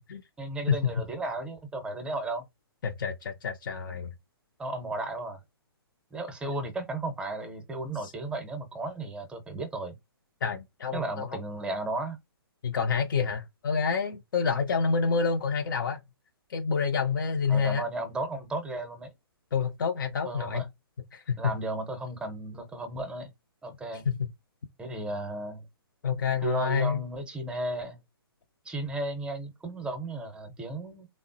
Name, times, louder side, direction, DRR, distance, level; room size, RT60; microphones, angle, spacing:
voice 1, 0.4-2.4 4.6-5.4 6.1-10.0 10.9-12.2 17.5-19.1 20.2-20.7 21.4-23.3 23.6-24.1 24.8-25.7 26.4-28.0 28.6-31.1, right 2 dB, 5° right, 0.7 m, -34 dB
voice 2, 2.8-4.1 8.0-8.1 10.4-11.4 12.6-16.0 16.5-17.8 19.5-20.6 21.1-21.5 24.1-24.3 26.0-27.0, left 5 dB, 55° left, 0.5 m, -28 dB
3.4 x 2.0 x 2.5 m
figure-of-eight pair, 125°, 13 cm